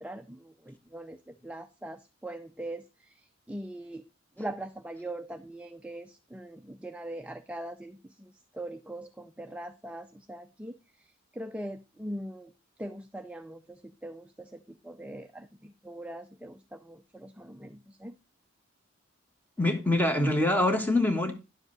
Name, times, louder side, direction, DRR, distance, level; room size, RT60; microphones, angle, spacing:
voice 1, 0.0-4.0 4.4-12.5 12.8-18.1, right 1 dB, 5° right, 0.4 m, -42 dB
voice 2, 19.6-21.3, left 1 dB, 10° left, 1.3 m, -24 dB
10.5 x 7.2 x 3.9 m
head